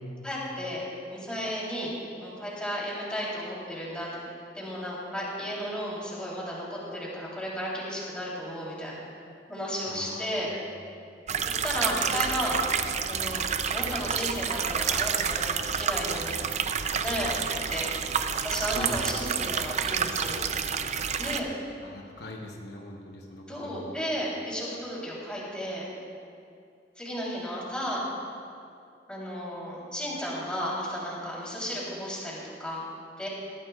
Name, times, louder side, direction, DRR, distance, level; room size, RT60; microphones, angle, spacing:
voice 1, 0.2-0.8 1.1-1.9 2.2-4.2 4.5-9.0 9.5-10.5 11.4-12.6 13.1-13.5 13.7-16.3 17.0-17.9 18.4-20.4 21.2-21.5 23.5-25.8 27.0-28.1 29.1-32.9 33.2-33.3, equal, 5° left, -6 dB, 3.3 m, -33 dB
voice 2, 9.9-10.3 18.7-19.0 21.8-23.4 23.7-23.9, left 1 dB, 65° left, 1 dB, 1.0 m, -41 dB
sound 1, 11.3-21.4, right 7 dB, 40° right, 0.5 m, -29 dB
20.0 x 14.0 x 2.4 m, 2.4 s
head